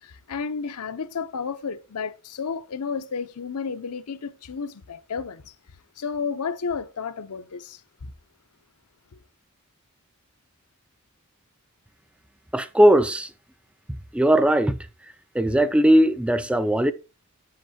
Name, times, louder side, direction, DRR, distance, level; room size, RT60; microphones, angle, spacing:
voice 1, 0.0-5.5 6.0-8.1, left 5 dB, 80° left, 0.7 m, -32 dB
voice 2, 12.5-13.3 14.1-14.8 15.3-16.9, right 1 dB, 5° right, 0.3 m, -18 dB
7.9 x 7.6 x 2.8 m
head